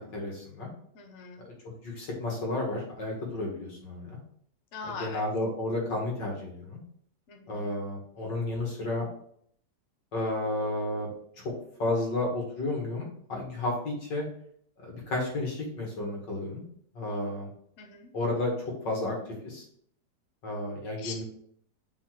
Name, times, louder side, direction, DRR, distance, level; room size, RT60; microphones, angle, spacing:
voice 1, 0.1-0.7 1.8-4.2 5.0-6.8 7.5-9.1 10.1-11.1 11.8-14.2 14.8-16.6 16.9-17.5 18.1-19.1 19.4-19.6 20.4-21.2, left 2 dB, 85° left, -2 dB, 2.6 m, -32 dB
voice 2, 0.9-1.5 4.7-5.2 7.3-7.7 17.8-18.1 21.0-21.2, left 4 dB, 50° left, 2 dB, 1.1 m, -41 dB
5.6 x 4.3 x 4.7 m, 0.65 s
omnidirectional pair, 1.9 m